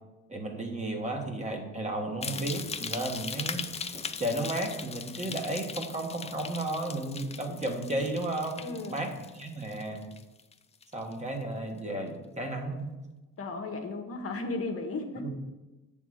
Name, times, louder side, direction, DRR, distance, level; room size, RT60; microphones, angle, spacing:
voice 1, 0.3-3.7 3.9-10.0 10.9-12.9 15.2-15.3, right 1 dB, 25° right, 2 dB, 1.3 m, -33 dB
sound 1, 2.2-10.5 10.8-11.3 11.8-11.9, left 5 dB, 20° left, 0.4 m, -39 dB
voice 2, 8.6-9.1 13.4-15.3, left 3 dB, 50° left, 4 dB, 1.1 m, -35 dB
7.1 x 3.7 x 6.3 m, 1.1 s
cardioid pair, 90°, 30 cm